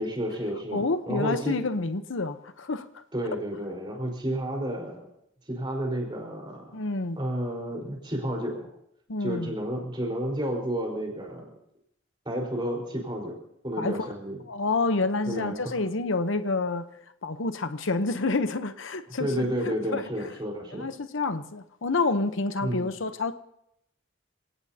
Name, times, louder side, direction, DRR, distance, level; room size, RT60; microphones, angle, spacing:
voice 1, 0.0-1.6 3.1-5.1 5.5-6.8 7.2-8.7 9.2-11.5 12.2-13.4 13.6-14.4 15.3-15.8 19.2-20.9 22.6-22.9, equal, 25° right, 1 dB, 4.5 m, -31 dB
voice 2, 0.7-2.9 6.7-7.2 9.1-9.5 13.8-14.1 14.5-16.9 17.2-19.3 19.6-20.1 20.7-23.3, left 3 dB, 70° left, 10 dB, 0.9 m, -28 dB
27.5 x 18.0 x 2.8 m, 0.76 s
head